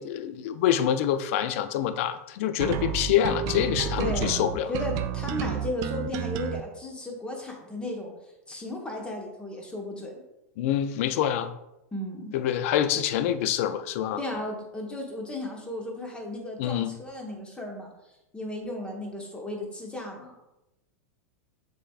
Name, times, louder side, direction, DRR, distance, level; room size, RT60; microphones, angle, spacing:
voice 1, 0.0-4.7 10.6-11.5 12.3-14.2 16.6-17.0, left 10 dB, 60° left, 11 dB, 0.4 m, -26 dB
sound 1, 2.6-6.6, right 8 dB, 45° right, 0.4 m, -31 dB
voice 2, 4.0-8.1 8.5-10.2 11.9-12.3 14.2-17.9 18.3-20.4, left 1 dB, 10° left, 0 dB, 1.0 m, -35 dB
6.5 x 3.5 x 2.4 m, 0.93 s
hypercardioid pair, 105°, 8 cm